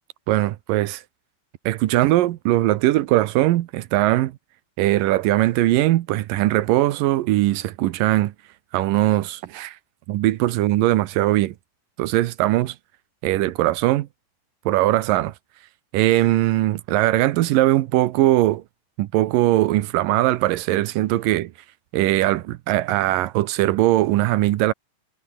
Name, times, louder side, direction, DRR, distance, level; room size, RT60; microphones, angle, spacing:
voice 1, 0.3-1.0 1.7-4.3 4.8-8.3 8.7-9.8 10.1-11.6 12.0-12.8 13.2-14.1 14.7-15.3 15.9-18.6 19.0-21.5 21.9-24.7, right 16 dB, 90° right, 2.6 m, -20 dB
omnidirectional pair, 3.9 m